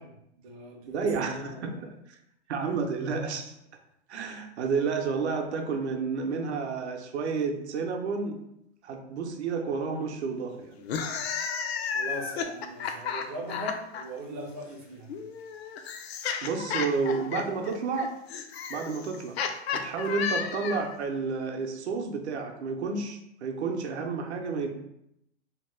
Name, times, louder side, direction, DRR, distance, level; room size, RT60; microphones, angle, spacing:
voice 1, 0.0-1.9 11.9-15.3, right 1 dB, 35° right, -1 dB, 0.4 m, -40 dB
voice 2, 0.9-1.8 2.5-3.5 4.1-8.4 8.8-10.8 16.4-18.1 18.7-19.4 19.7-24.7, right 5 dB, 75° right, 3 dB, 0.6 m, -30 dB
sound 1, 10.8-14.0 15.1-21.0, left 6 dB, 65° left, 0.5 m, -33 dB
2.8 x 2.2 x 3.2 m, 0.78 s
hypercardioid pair, 155°, 34 cm